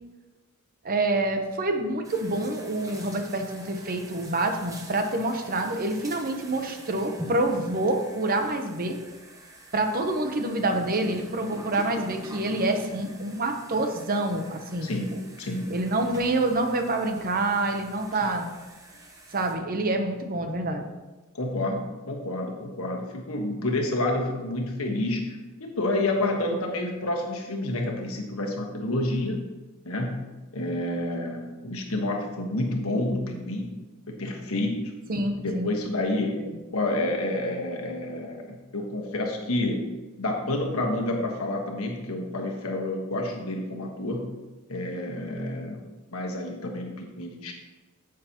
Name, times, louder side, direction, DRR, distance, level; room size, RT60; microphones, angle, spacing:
voice 1, 0.8-9.0 9.7-15.2 15.7-18.5 19.3-20.9 35.1-35.7 36.4-36.6, right 2 dB, 40° right, 5 dB, 0.8 m, -27 dB
sound 1, 2.0-19.6, right 1 dB, 15° right, 0.9 m, -46 dB
voice 2, 14.8-15.7 18.2-18.3 21.3-29.5 29.8-30.2 30.5-33.7 34.1-34.9 35.4-36.4 36.7-39.9 40.2-44.3 44.7-45.8 46.1-47.5, left 1 dB, 70° left, 1 dB, 1.4 m, -29 dB
9.8 x 7.6 x 2.9 m, 1.2 s
head